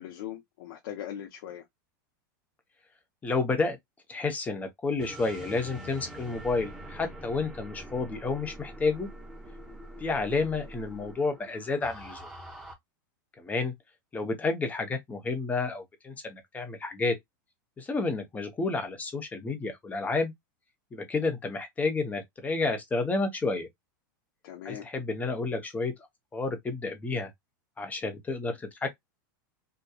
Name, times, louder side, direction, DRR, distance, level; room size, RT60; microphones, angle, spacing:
voice 1, 0.0-1.6 24.4-24.9, left 10 dB, 65° left, 0.8 m, -40 dB
voice 2, 3.2-3.8 4.1-9.1 10.0-12.3 13.4-13.7 14.1-17.1 17.8-20.3 20.9-23.7 24.6-25.9 26.3-27.3 27.8-28.9, left 3 dB, 15° left, 0.8 m, -30 dB
sound 1, 5.0-12.7, right 1 dB, 5° right, 1.1 m, -44 dB
2.7 x 2.2 x 2.2 m
supercardioid pair, 135°, 11 cm